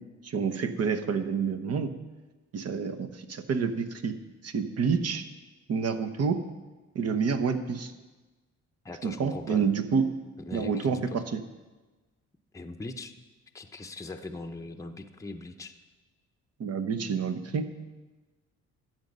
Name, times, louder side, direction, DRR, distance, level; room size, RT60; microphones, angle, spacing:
voice 1, 0.2-1.9 2.5-4.1 4.4-5.2 5.7-6.4 6.9-7.9 9.0-10.1 10.5-11.4 16.6-17.7, right 5 dB, 55° right, 9 dB, 1.0 m, -28 dB
voice 2, 8.8-9.7 10.5-11.2 12.5-13.1 13.5-15.7, left 2 dB, 10° left, 5 dB, 0.8 m, -40 dB
13.0 x 7.6 x 5.4 m, 1.2 s
cardioid pair, 90°, 30 cm